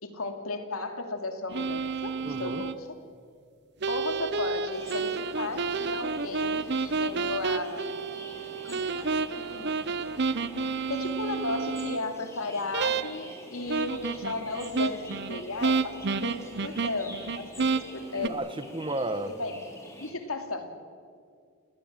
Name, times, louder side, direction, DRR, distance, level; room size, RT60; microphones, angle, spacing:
voice 1, 0.0-2.9 3.9-7.9 8.6-9.2 9.5-9.8 10.9-15.9 16.2-18.4 19.2-19.6 20.0-20.7, left 3 dB, 90° left, 6 dB, 2.7 m, -35 dB
sound 1, 1.5-2.7 3.8-12.0 12.7-13.4 13.7-18.3, right 4 dB, 55° right, 0.8 m, -30 dB
voice 2, 2.2-2.6 18.3-19.3, right 2 dB, 25° right, 11 dB, 1.2 m, -33 dB
sound 2, 4.7-20.1, left 1 dB, 15° left, 3.8 m, -47 dB
29.0 x 20.0 x 7.4 m, 2.2 s
head